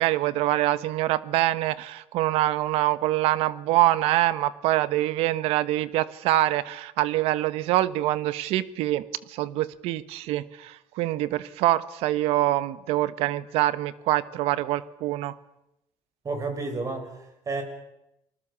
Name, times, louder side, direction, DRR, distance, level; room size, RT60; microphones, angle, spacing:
voice 1, 0.0-15.4, right 15 dB, 80° right, 16 dB, 1.2 m, -25 dB
voice 2, 16.2-17.6, right 3 dB, 35° right, 6 dB, 7.0 m, -31 dB
28.5 x 20.0 x 7.2 m, 0.86 s
supercardioid pair, 95°, 10 cm